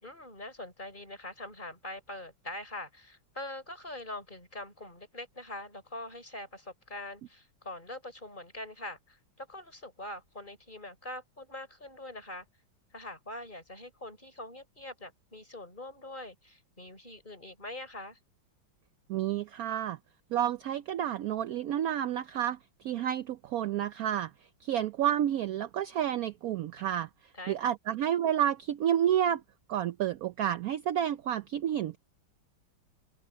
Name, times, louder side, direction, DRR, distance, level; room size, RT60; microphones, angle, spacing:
voice 1, 0.0-12.5 12.9-18.2 27.3-27.6, left 1 dB, 25° left, 4.7 m, -43 dB
voice 2, 19.1-20.0 20.3-24.3 24.6-27.1 27.5-29.4 29.7-32.0, right 10 dB, 75° right, 0.8 m, -30 dB
omnidirectional pair, 2.1 m